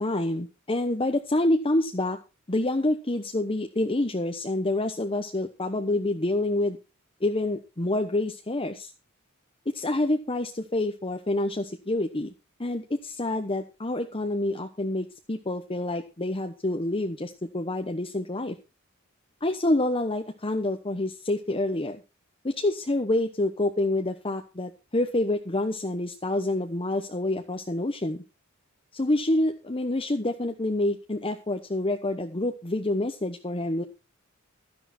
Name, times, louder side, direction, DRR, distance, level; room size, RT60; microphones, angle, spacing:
voice 1, 0.0-2.2 2.5-6.8 7.2-8.9 9.7-12.3 12.6-18.6 19.4-22.0 22.4-28.2 28.9-33.8, left 1 dB, 25° left, 5 dB, 1.0 m, -27 dB
13.0 x 10.5 x 4.3 m, 0.29 s
head